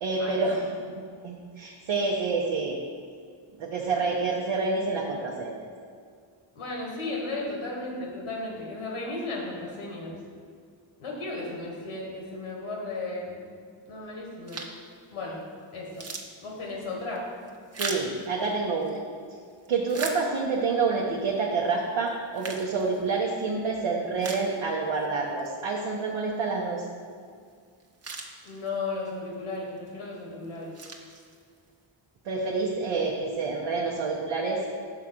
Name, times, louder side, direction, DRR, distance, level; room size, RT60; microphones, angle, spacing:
voice 1, 0.0-0.7 1.2-2.8 3.6-5.5 17.8-19.0 19.7-26.9 32.2-34.6, right 4 dB, 70° right, -2 dB, 0.9 m, -28 dB
voice 2, 6.5-10.2 11.0-13.4 13.9-14.6 15.1-15.4 15.7-16.1 16.4-17.2 28.4-30.7, left 2 dB, 90° left, -2 dB, 1.5 m, -35 dB
sound 1, 14.5-14.9 15.4-15.5 15.8-19.0 19.5-20.7 21.3-21.4 22.1-23.4 23.8-23.9 24.2-25.1 25.4-25.5 27.5-27.6 27.8-28.9 29.6-29.9 30.4-31.7, right 3 dB, 30° right, 0.8 m, -39 dB
5.7 x 3.7 x 5.9 m, 2.1 s
cardioid pair, 65°, 50 cm